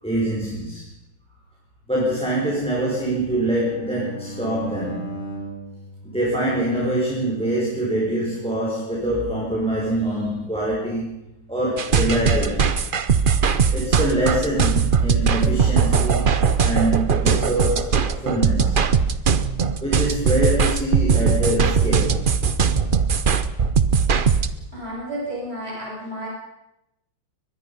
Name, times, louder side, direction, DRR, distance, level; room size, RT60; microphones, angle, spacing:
voice 1, 0.0-0.8 1.9-5.2 6.0-11.2 11.5-12.7 13.1-13.2 13.7-18.9 19.8-22.2, right 1 dB, 5° left, -4 dB, 4.8 m, -24 dB
Bowed string instrument, 2.9-7.0, right 1 dB, 55° left, 5.4 m, -37 dB
sound 1, 11.8-24.5, right 6 dB, 55° right, 0.5 m, -19 dB
voice 2, 24.7-26.3, right 1 dB, 30° right, -5 dB, 8.3 m, -31 dB
23.0 x 20.5 x 5.5 m, 0.88 s
omnidirectional pair, 2.2 m